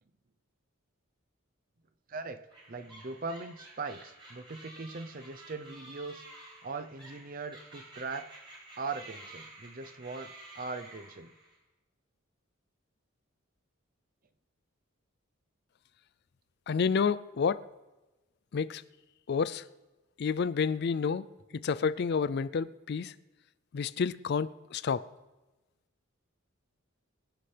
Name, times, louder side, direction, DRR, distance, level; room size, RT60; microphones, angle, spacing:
voice 1, 2.1-2.4 2.7-8.3 8.8-11.3, right 4 dB, 40° right, 0.7 m, -40 dB
sound 1, 2.5-11.6, right 1 dB, 25° right, 5.5 m, -51 dB
voice 2, 16.7-17.6 18.5-18.8 19.3-19.6 20.2-21.2 21.6-23.1 23.7-25.0, left 5 dB, 50° left, 0.4 m, -29 dB
24.0 x 10.0 x 3.4 m
head